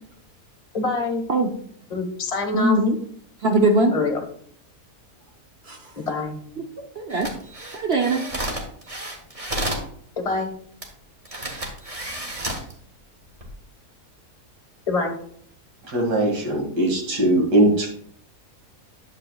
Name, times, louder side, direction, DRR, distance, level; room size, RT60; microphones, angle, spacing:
voice 1, 0.7-1.2 1.9-2.8 3.9-4.2 6.0-6.4 10.2-10.5 14.9-15.1, left 3 dB, 25° left, 3 dB, 1.2 m, -25 dB
voice 2, 2.5-3.0 3.4-3.9 5.7-5.8 7.0-7.3 7.7-8.3, right 2 dB, 55° right, 4 dB, 0.8 m, -20 dB
sound 1, 7.1-9.9 10.8-10.9 11.3-12.7 13.3-13.5, right 1 dB, 25° right, 1.3 m, -31 dB
voice 3, 15.9-17.9, right 1 dB, 85° right, 1 dB, 2.6 m, -20 dB
11.0 x 7.3 x 2.3 m, 0.62 s
omnidirectional pair, 1.7 m